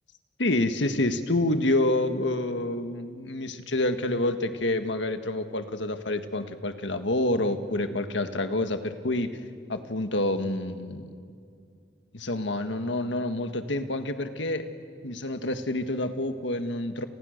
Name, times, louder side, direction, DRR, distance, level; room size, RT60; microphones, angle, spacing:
voice 1, 0.4-9.4 9.7-11.0 12.1-14.7 15.0-17.1, left 1 dB, 90° left, 8 dB, 1.7 m, -28 dB
30.0 x 29.5 x 6.7 m, 2.2 s
head